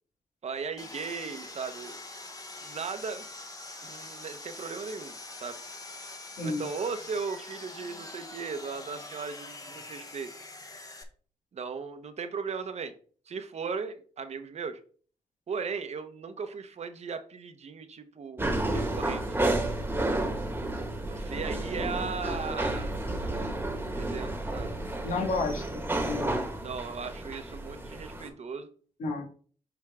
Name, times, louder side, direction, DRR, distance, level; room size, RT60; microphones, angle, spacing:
voice 1, 0.4-2.0 2.6-3.3 3.8-5.1 5.4-5.6 6.4-10.3 11.5-12.9 13.3-14.8 15.5-19.8 21.1-23.6 23.9-24.7 26.6-28.7, right 5 dB, 60° right, 9 dB, 1.0 m, -37 dB
Sawing, 0.8-11.0, left 2 dB, 30° left, 1.2 m, -44 dB
sound 1, 18.4-28.3, right 1 dB, 15° right, 1.4 m, -31 dB
voice 2, 25.0-26.5 29.0-29.2, left 3 dB, 80° left, 1 dB, 1.9 m, -31 dB
6.9 x 4.6 x 3.6 m, 0.43 s
cardioid pair, 70°, 13 cm